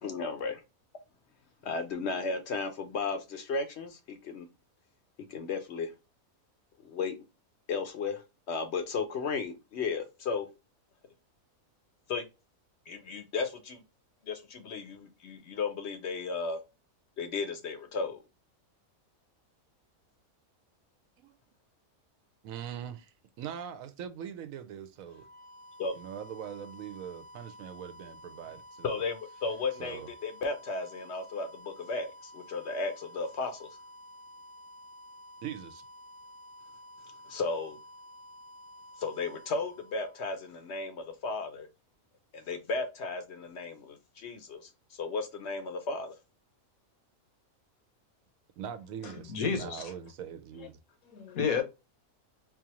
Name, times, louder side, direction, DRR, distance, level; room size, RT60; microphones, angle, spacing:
voice 1, 0.0-0.6 1.6-4.5 5.3-5.9 6.8-7.2 7.7-8.2 8.5-10.5 12.1-12.2 12.9-13.8 14.3-16.6 17.2-18.2 25.8-25.9 28.8-33.7 37.3-37.8 39.0-41.7 42.3-46.1, left 4 dB, 60° left, 0.8 m, -34 dB
voice 2, 22.4-25.3 25.9-29.0 29.8-30.1 35.4-35.8 48.6-50.8, right 9 dB, 75° right, 1.0 m, -42 dB
sound 1, 25.0-40.8, left 1 dB, 50° right, 0.8 m, -51 dB
voice 3, 49.3-49.8 51.1-51.6, left 6 dB, 75° left, 1.3 m, -30 dB
4.0 x 2.4 x 2.8 m
omnidirectional pair, 1.5 m